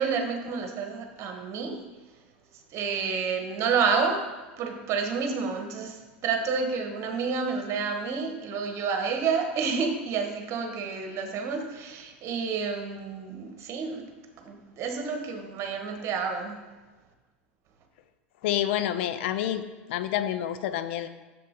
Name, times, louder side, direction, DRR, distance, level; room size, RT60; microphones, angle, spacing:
voice 1, 0.0-1.8 2.7-4.2 4.6-6.0 6.2-14.1 14.4-16.6, right 5 dB, 45° right, 4 dB, 1.4 m, -29 dB
voice 2, 18.4-21.1, left 11 dB, 65° left, 10 dB, 0.6 m, -28 dB
7.5 x 6.9 x 3.7 m, 1.2 s
hypercardioid pair, 85°, 7 cm